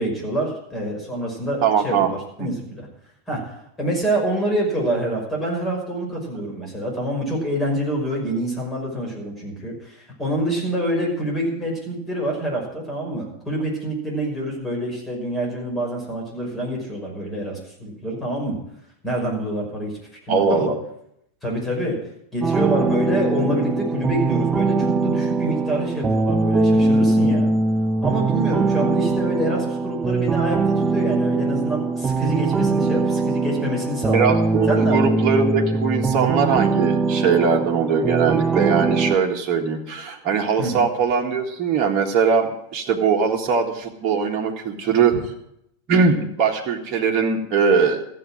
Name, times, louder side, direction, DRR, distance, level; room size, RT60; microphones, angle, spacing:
voice 1, 0.0-2.9 3.3-18.6 19.0-19.9 20.2-20.7 21.4-22.0 22.3-27.5 28.0-34.3 34.7-35.2 40.6-40.8, right 1 dB, 15° left, -1 dB, 5.8 m, -26 dB
voice 2, 1.6-2.1 20.3-20.8 34.1-45.2 45.9-48.0, right 6 dB, 35° right, 0 dB, 1.8 m, -21 dB
sound 1, 22.4-39.2, right 3 dB, 15° right, 0.6 m, -21 dB
14.5 x 7.7 x 8.9 m, 0.76 s
figure-of-eight pair, 90°, 0 cm